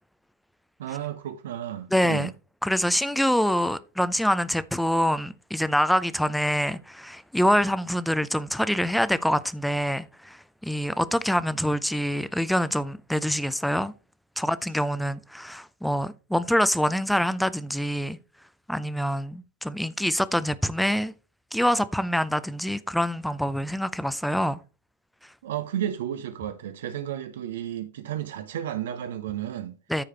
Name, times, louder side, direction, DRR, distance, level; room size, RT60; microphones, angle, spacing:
voice 1, 0.8-2.3 25.4-29.8, right 11 dB, 60° right, 0.8 m, -32 dB
voice 2, 1.9-2.3 2.6-13.9 14.4-18.2 18.7-21.1 21.5-24.6 29.9-30.0, equal, ahead, 0.6 m, -25 dB
14.0 x 4.9 x 3.3 m
figure-of-eight pair, 90°, 0 cm